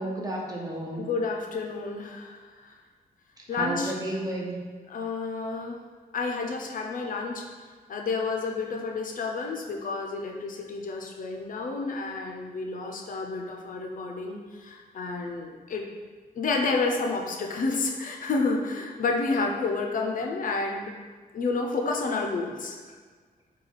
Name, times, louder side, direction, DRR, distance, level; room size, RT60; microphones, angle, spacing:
voice 1, 0.0-1.0 3.5-4.6, right 1 dB, 25° right, -3 dB, 0.7 m, -32 dB
voice 2, 1.0-2.8 3.5-3.9 4.9-5.8 6.1-7.5 7.9-15.8 16.4-20.9 21.3-23.0, left 3 dB, 55° left, 1 dB, 0.4 m, -30 dB
3.2 x 2.2 x 3.9 m, 1.5 s
cardioid pair, 95°, 16 cm